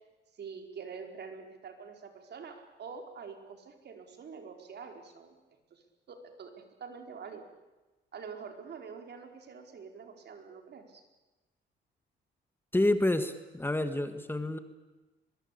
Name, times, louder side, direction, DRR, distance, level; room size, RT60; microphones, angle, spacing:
voice 1, 0.3-5.4 5.7-7.5 8.1-11.0, right 5 dB, 60° right, 4 dB, 4.6 m, -46 dB
voice 2, 12.7-14.6, left 1 dB, 10° left, 9 dB, 1.8 m, -28 dB
23.0 x 22.0 x 8.5 m, 1.1 s
cardioid pair, 90°, 20 cm